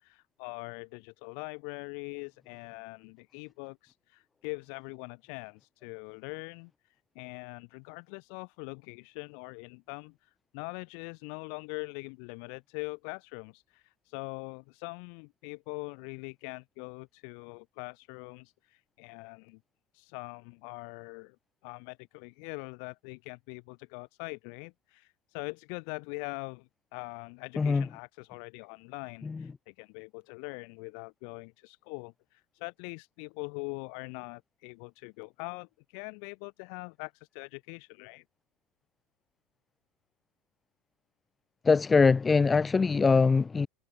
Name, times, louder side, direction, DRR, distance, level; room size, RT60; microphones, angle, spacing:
voice 1, 0.0-6.7 7.2-10.2 10.5-18.5 19.0-19.6 19.9-21.4 21.6-25.1 25.3-32.1 32.6-38.2, left 40 dB or more, 65° left, 5.3 m, -42 dB
voice 2, 27.6-27.9 29.2-29.4 41.6-43.7, left 4 dB, 20° left, 0.3 m, -23 dB
hypercardioid pair, 85°, 0 cm